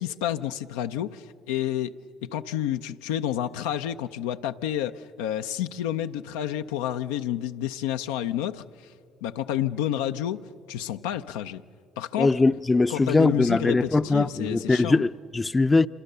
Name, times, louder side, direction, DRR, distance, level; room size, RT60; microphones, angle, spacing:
voice 1, 0.0-8.6 9.2-10.4 10.7-11.6 12.0-12.4 12.9-15.0, left 11 dB, 90° left, 0.5 m, -30 dB
voice 2, 12.2-15.9, left 3 dB, 25° left, 0.5 m, -21 dB
27.0 x 24.5 x 6.7 m
supercardioid pair, 60°, 0 cm